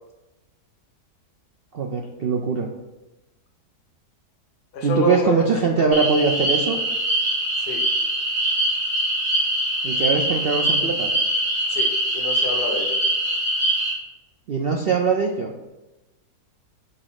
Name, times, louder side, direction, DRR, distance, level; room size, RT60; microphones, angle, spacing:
voice 1, 1.7-2.7 4.8-6.8 9.8-11.1 14.5-15.6, right 5 dB, 65° right, 2 dB, 0.6 m, -22 dB
voice 2, 4.7-5.5 5.8-5.9 7.6-7.8 11.7-13.0, left 3 dB, 85° left, 2 dB, 1.5 m, -28 dB
sound 1, 5.9-13.9, right 1 dB, 40° right, 2.8 m, -23 dB
5.6 x 4.1 x 5.7 m, 1.0 s
omnidirectional pair, 1.7 m